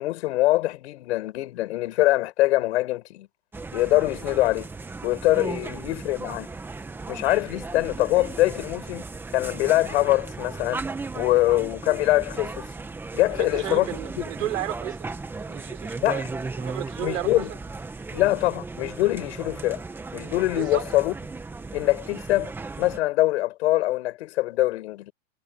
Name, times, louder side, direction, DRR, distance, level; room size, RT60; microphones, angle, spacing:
voice 1, 0.0-3.3 3.7-4.7 5.0-6.5 7.1-9.0 9.3-10.8 11.1-12.7 13.1-13.9 14.2-14.3 16.0-16.3 17.0-17.5 18.1-19.8 20.1-21.1 21.7-22.5 22.8-25.1, left 17 dB, 55° left, 7.1 m, -23 dB
sound 1, 3.5-23.0, right 3 dB, 5° right, 1.4 m, -36 dB
voice 2, 13.4-15.0 15.4-16.2 16.6-17.4 20.6-20.8, right 13 dB, 70° right, 5.9 m, -33 dB
supercardioid pair, 165°, 40 cm